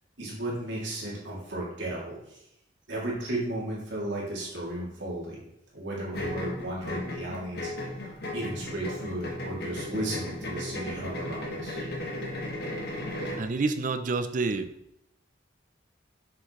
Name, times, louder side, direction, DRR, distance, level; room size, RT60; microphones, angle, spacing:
voice 1, 0.2-2.4 2.9-5.4 5.7-7.7 8.0-11.8, right 1 dB, 70° right, -5 dB, 2.6 m, -34 dB
sound 1, 6.1-13.5, left 1 dB, 55° left, 1.6 m, -36 dB
voice 2, 13.4-14.7, right 3 dB, 45° right, 10 dB, 0.5 m, -28 dB
7.7 x 6.5 x 3.1 m, 0.81 s
head